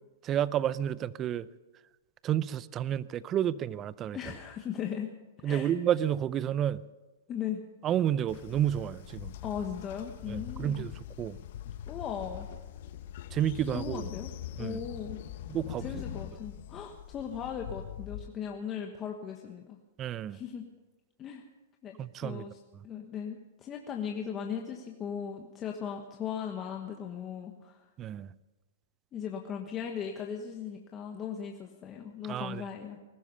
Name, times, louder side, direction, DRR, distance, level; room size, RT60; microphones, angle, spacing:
voice 1, 0.2-1.5 2.2-4.2 5.4-6.8 7.8-9.3 10.3-10.9 11.2-11.4 13.3-14.1 14.6-14.8 15.5-15.8 20.0-20.4 22.0-22.4 28.0-28.3 32.3-32.6, right 10 dB, 25° right, 19 dB, 0.5 m, -30 dB
voice 2, 4.1-5.1 5.4-5.8 7.3-7.6 9.4-10.9 11.9-12.5 13.7-14.3 14.6-15.2 15.8-19.8 20.3-20.7 21.2-21.4 21.8-22.0 22.2-22.6 22.8-27.8 29.1-33.0, left 8 dB, 25° left, 2 dB, 1.3 m, -38 dB
Train, 8.3-18.3, left 11 dB, 60° left, 0.9 m, -42 dB
20.5 x 12.5 x 5.6 m, 1.2 s
hypercardioid pair, 135°, 0 cm